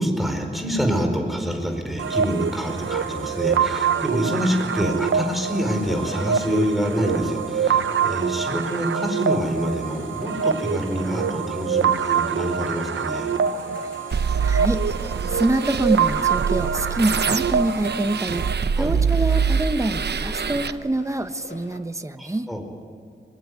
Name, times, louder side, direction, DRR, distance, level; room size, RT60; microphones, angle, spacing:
voice 1, 0.0-13.3 18.8-18.9 22.2-22.6, equal, ahead, 3 dB, 4.7 m, -26 dB
sound 1, 2.0-18.5, right 7 dB, 90° right, 0.9 m, -25 dB
sound 2, 2.8-21.8, left 3 dB, 70° left, 2.5 m, -44 dB
voice 2, 13.8-18.5 18.8-22.5, right 2 dB, 15° right, 9 dB, 1.1 m, -26 dB
sound 3, 14.1-20.7, right 6 dB, 60° right, 0.8 m, -25 dB
23.0 x 22.0 x 9.6 m, 2.3 s
wide cardioid pair, 125°, 19 cm